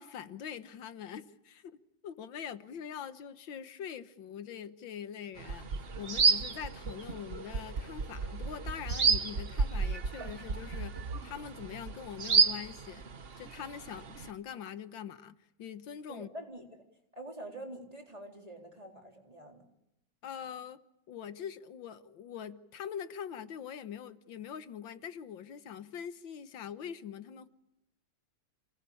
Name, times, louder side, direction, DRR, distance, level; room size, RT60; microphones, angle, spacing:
voice 1, 0.0-1.8 2.0-13.0 13.4-16.3 20.2-20.8 21.1-27.5, left 8 dB, 85° left, 1.9 m, -43 dB
sound 1, 5.4-14.3, right 5 dB, 40° right, 1.0 m, -31 dB
voice 2, 16.1-16.8 17.1-19.7, right 1 dB, 20° right, 3.9 m, -46 dB
29.0 x 19.5 x 8.5 m
omnidirectional pair, 2.0 m